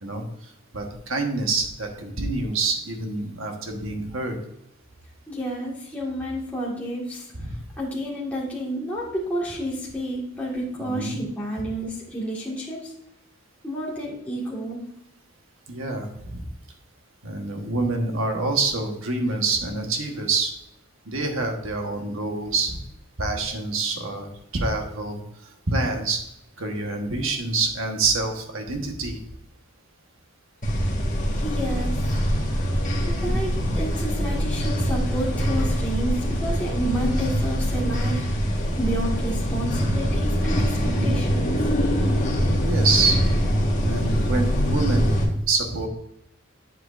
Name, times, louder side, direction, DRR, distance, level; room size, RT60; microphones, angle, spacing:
voice 1, 0.0-4.4 7.4-7.6 10.8-11.2 15.7-16.4 17.2-20.5 21.0-22.8 23.2-26.2 26.6-29.2 33.2-33.9 40.9-41.2 42.6-43.2 43.8-45.1 45.5-45.9, right 3 dB, 65° right, 3 dB, 1.4 m, -26 dB
voice 2, 5.3-7.2 7.8-12.8 13.6-14.8 31.4-31.9 32.5-32.6 33.0-38.2 38.8-40.8 41.0-41.5, equal, 5° left, -7 dB, 1.9 m, -30 dB
sound 1, 30.6-45.2, equal, 35° left, 1.6 m, -23 dB
9.0 x 8.1 x 2.6 m, 0.78 s
head